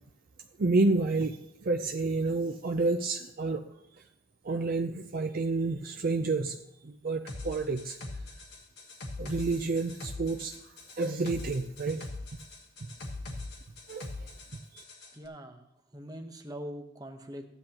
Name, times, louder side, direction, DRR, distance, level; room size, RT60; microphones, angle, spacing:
voice 1, 0.6-3.6 4.4-6.6 6.8-8.0 9.2-10.5 11.0-12.1 13.9-14.8, right 3 dB, 50° right, 4 dB, 0.5 m, -29 dB
sound 1, 7.3-15.1, left 2 dB, 60° left, 1.4 m, -42 dB
voice 2, 15.1-17.5, equal, 20° right, 4 dB, 1.0 m, -43 dB
14.5 x 10.0 x 2.9 m, 0.78 s
head